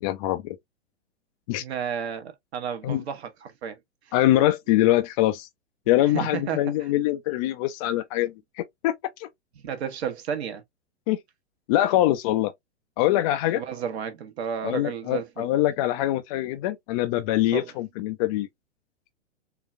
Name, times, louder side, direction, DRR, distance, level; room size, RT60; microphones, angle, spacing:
voice 1, 0.0-0.6 1.5-1.6 2.8-3.0 4.1-5.5 5.9-8.9 9.2-9.3 11.1-11.2 11.7-12.5 13.0-13.6 14.6-18.5, left 14 dB, 30° left, 0.4 m, -23 dB
voice 2, 1.6-3.8 4.1-4.2 6.0-6.9 9.6-10.6 13.5-15.5 17.5-17.7, right 7 dB, 65° right, 1.1 m, -32 dB
3.8 x 2.3 x 2.5 m
figure-of-eight pair, 105°, 35 cm